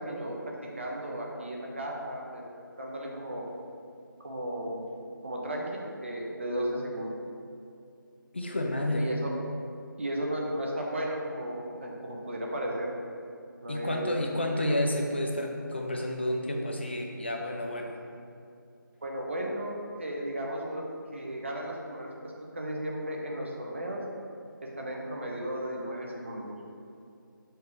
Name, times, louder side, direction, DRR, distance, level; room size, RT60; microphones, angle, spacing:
voice 1, 0.0-2.4 2.8-3.4 4.2-5.0 5.2-5.7 6.0-7.1 9.0-9.3 10.0-12.9 13.6-14.1 14.5-14.8 19.0-19.7 20.0-20.8 21.1-22.1 22.5-24.0 24.6-26.6, right 1 dB, 35° right, -2 dB, 0.9 m, -34 dB
voice 2, 8.3-9.1 13.7-18.0, left 1 dB, 30° left, 2 dB, 0.6 m, -30 dB
6.7 x 4.6 x 5.0 m, 2.5 s
figure-of-eight pair, 165°, 12 cm